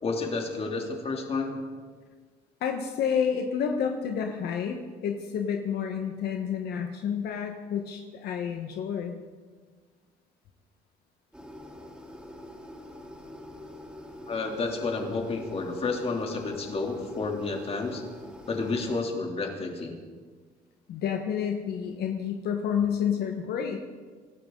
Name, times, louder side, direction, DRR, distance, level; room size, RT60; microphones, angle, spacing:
voice 1, 0.0-1.6 14.3-18.0 18.5-19.9, left 3 dB, 35° left, 1 dB, 3.1 m, -30 dB
voice 2, 2.6-9.1 20.9-23.8, left 7 dB, 70° left, 3 dB, 1.4 m, -29 dB
sound 1, 11.3-19.0, left 1 dB, 5° right, 3.0 m, -45 dB
25.5 x 13.0 x 3.9 m, 1.5 s
cardioid pair, 110°, 17 cm